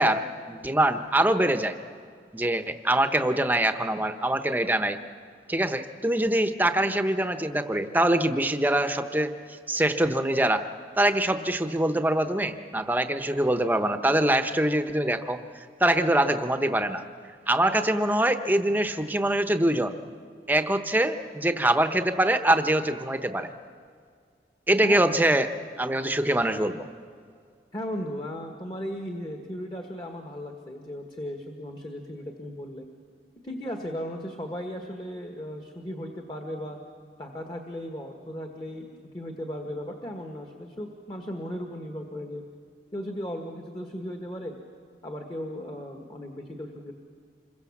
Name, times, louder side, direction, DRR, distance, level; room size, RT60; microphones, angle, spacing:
voice 1, 0.0-1.8 2.3-5.0 5.5-9.3 9.7-10.6 11.0-17.0 17.5-19.9 20.5-23.5 24.7-25.5 25.8-26.9, right 1 dB, 10° right, 8 dB, 0.9 m, -24 dB
voice 2, 24.8-25.3 27.7-32.9 33.4-36.8 37.2-42.4 42.9-44.5 45.0-46.9, equal, 25° left, 3 dB, 1.5 m, -36 dB
26.5 x 22.5 x 7.3 m, 2.1 s
head